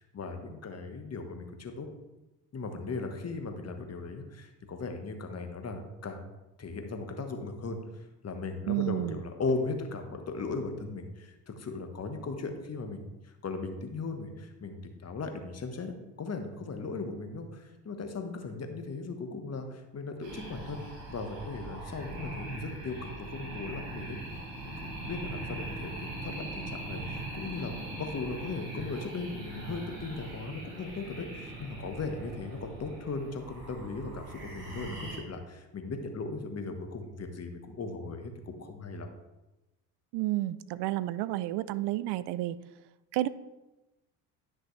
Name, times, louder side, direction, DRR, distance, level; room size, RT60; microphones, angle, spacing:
voice 1, 0.0-1.9 2.5-6.2 6.6-24.2 24.6-39.1, left 3 dB, 30° left, 5 dB, 1.3 m, -38 dB
voice 2, 8.7-9.2 40.1-42.6 43.1-43.3, right 16 dB, 60° right, 17 dB, 0.5 m, -30 dB
sound 1, 20.2-35.2, right 2 dB, 90° right, 2.5 m, -41 dB
10.5 x 6.2 x 3.2 m, 1.0 s
hypercardioid pair, 65°, 47 cm